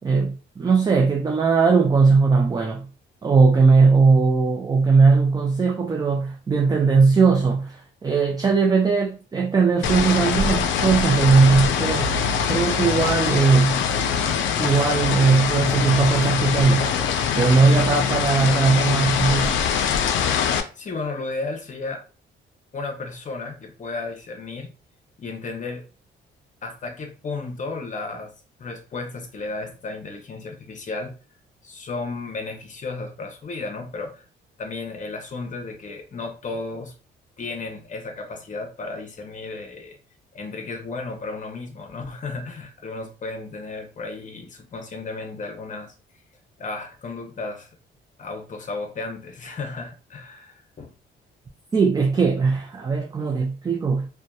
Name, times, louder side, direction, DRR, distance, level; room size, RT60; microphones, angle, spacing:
voice 1, 0.0-2.9 3.2-12.1 12.5-13.8 14.6-16.9 17.3-19.6 51.7-54.1, right 4 dB, 20° right, 0.3 m, -19 dB
sound 1, 9.8-20.6, left 7 dB, 75° left, 0.4 m, -23 dB
voice 2, 20.4-22.0 22.7-24.7 25.2-25.9 26.6-28.3 28.6-31.2 31.6-34.2 34.6-36.9 37.4-40.0 40.3-45.9 46.6-47.7 48.2-50.9, left 3 dB, 40° left, 0.7 m, -34 dB
2.7 x 2.2 x 2.2 m
cardioid pair, 90°, 20 cm